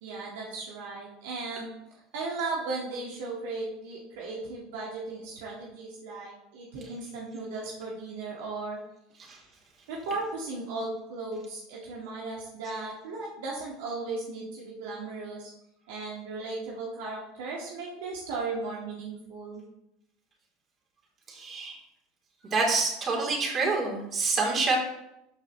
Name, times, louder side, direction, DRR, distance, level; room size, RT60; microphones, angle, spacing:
voice 1, 0.0-8.8 9.9-15.5 15.9-19.6, right 3 dB, 75° right, -3 dB, 1.8 m, -36 dB
voice 2, 21.3-21.8 22.4-24.8, right 3 dB, 40° right, -1 dB, 3.4 m, -27 dB
12.5 x 6.0 x 3.2 m, 0.84 s
hypercardioid pair, 90°, 0 cm